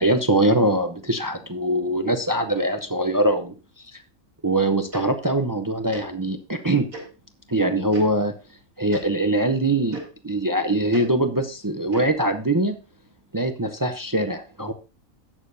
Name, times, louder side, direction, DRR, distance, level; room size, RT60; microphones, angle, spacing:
voice 1, 0.0-3.5 4.4-6.9 7.5-8.3 8.8-12.8 13.3-14.7, right 1 dB, 30° right, 7 dB, 0.3 m, -22 dB
Tick-tock, 4.9-5.0 5.9-6.0 6.9-7.0 7.9-8.0 8.9-9.0 9.9-10.0 10.9-11.0 11.9-12.1, right 1 dB, 85° right, 3.5 m, -37 dB
18.0 x 6.7 x 2.6 m, 0.32 s
omnidirectional pair, 1.4 m